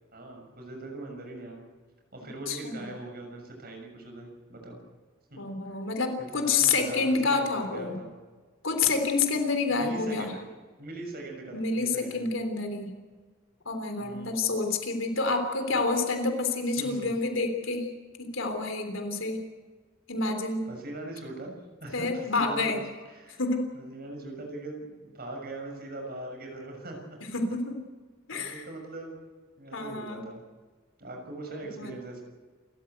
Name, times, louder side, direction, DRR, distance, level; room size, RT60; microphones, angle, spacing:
voice 1, 0.1-1.6 2.1-4.8 5.3-5.8 6.3-8.1 9.6-10.4 10.8-12.3 14.0-14.4 16.8-17.1 20.7-22.8 23.1-23.4 23.7-27.2 28.3-29.1 29.6-30.4 31.0-32.2, right 2 dB, 50° right, 2 dB, 6.4 m, -41 dB
voice 2, 2.5-2.9 5.4-7.9 8.6-10.3 11.5-12.9 13.7-17.9 18.2-19.4 20.1-20.7 21.9-22.8 23.4-23.7 27.3-27.8 28.3-28.6 29.7-30.2 31.8-31.9, left 3 dB, 75° left, 6 dB, 3.5 m, -28 dB
28.5 x 14.0 x 8.1 m, 1.5 s
head